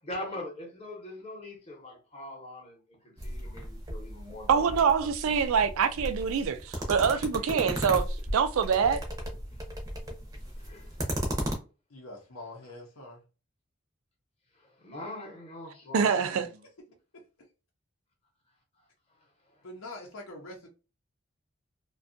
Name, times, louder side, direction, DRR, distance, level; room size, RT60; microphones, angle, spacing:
voice 1, 0.0-4.8 7.1-7.2 7.6-7.8 10.6-11.0 14.6-16.6 19.5-19.6, left 1 dB, 30° left, 0.8 m, -42 dB
sound 1, 3.2-11.5, equal, 15° right, 0.5 m, -36 dB
voice 2, 4.5-8.0 8.3-9.0 15.9-16.5, right 6 dB, 85° right, 0.4 m, -25 dB
voice 3, 11.9-13.2 17.1-17.5 19.6-20.7, left 2 dB, 85° left, 0.7 m, -45 dB
2.6 x 2.2 x 2.5 m
head